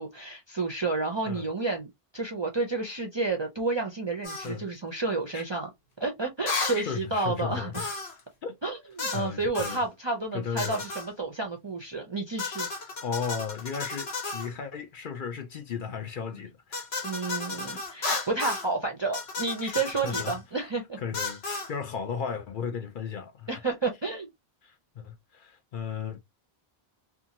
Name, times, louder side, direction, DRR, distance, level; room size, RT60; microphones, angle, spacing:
voice 1, 0.0-5.7 6.0-7.8 8.6-12.7 17.0-21.0 23.5-24.3, right 3 dB, 35° right, 0.4 m, -31 dB
sound 1, 4.2-4.5 6.5-6.8 7.7-8.2 9.0-9.3 9.5-9.8 10.6-11.1 12.4-14.5 16.7-18.7 19.1-20.4 21.1-21.7, left 3 dB, 85° left, 1.3 m, -33 dB
voice 2, 6.7-7.8 8.4-8.6 9.1-9.8 10.3-10.8 13.0-16.9 17.7-17.8 19.6-19.7 20.0-20.4 21.0-23.5 24.6-26.2, left 6 dB, 60° left, 0.7 m, -35 dB
2.7 x 2.4 x 2.7 m
omnidirectional pair, 1.1 m